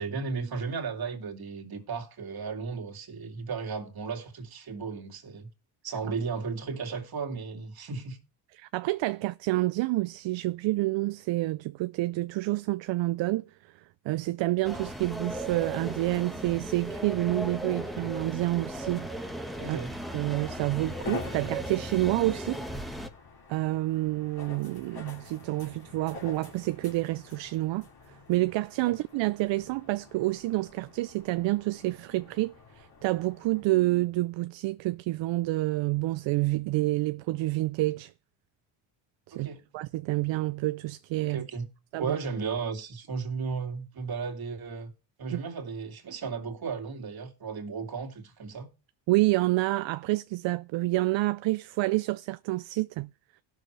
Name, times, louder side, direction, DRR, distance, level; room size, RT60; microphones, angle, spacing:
voice 1, 0.0-5.5 5.8-8.2 19.6-19.9 28.8-29.0 39.3-39.6 41.2-41.7 42.0-44.9 45.2-48.7, right 5 dB, 50° right, 2.3 m, -35 dB
voice 2, 8.6-13.7 14.0-19.1 19.7-19.8 20.1-22.6 23.5-38.1 39.3-41.4 41.9-42.2 45.3-45.4 49.1-53.1, right 18 dB, 65° right, 0.5 m, -28 dB
sound 1, 14.6-23.1, right 1 dB, ahead, 1.3 m, -37 dB
sound 2, 20.2-33.6, left 4 dB, 50° left, 3.2 m, -46 dB
17.5 x 6.3 x 3.2 m
cardioid pair, 85°, 48 cm